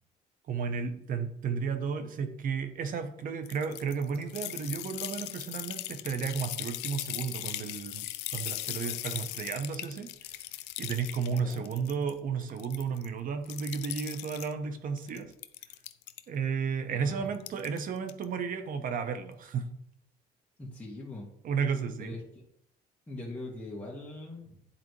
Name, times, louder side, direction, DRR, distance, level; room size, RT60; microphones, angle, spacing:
voice 1, 0.5-8.0 8.3-10.3 10.8-15.3 16.3-19.7 21.4-22.2, right 6 dB, 55° right, 8 dB, 1.0 m, -33 dB
sound 1, 3.5-12.1 12.4-13.1 13.5-14.5 15.0-16.2 17.3-17.8 18.1-18.2, left 15 dB, 90° left, 0.4 m, -39 dB
voice 2, 11.3-11.7 16.9-17.3 20.6-21.3 22.0-22.2 23.1-24.7, left 2 dB, 10° left, -5 dB, 1.8 m, -42 dB
10.0 x 4.1 x 3.2 m, 0.71 s
cardioid pair, 110°, 17 cm